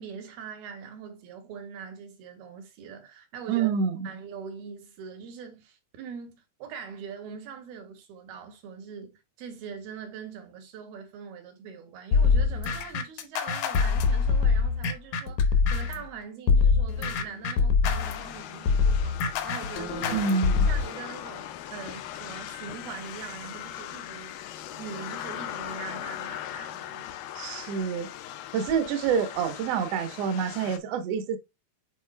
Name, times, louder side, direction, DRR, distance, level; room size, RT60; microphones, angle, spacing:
voice 1, 0.0-3.7 4.0-20.3 20.7-24.4 24.7-27.1, right 6 dB, 85° right, 3.5 m, -42 dB
voice 2, 3.5-4.1 20.1-20.7 27.3-28.1 28.5-31.4, right 6 dB, 70° right, 1.5 m, -27 dB
sound 1, 12.1-16.0 16.5-20.8, left 5 dB, 70° left, 1.9 m, -24 dB
sound 2, 18.0-30.8, left 12 dB, 85° left, 2.5 m, -39 dB
10.0 x 4.2 x 2.3 m
omnidirectional pair, 4.3 m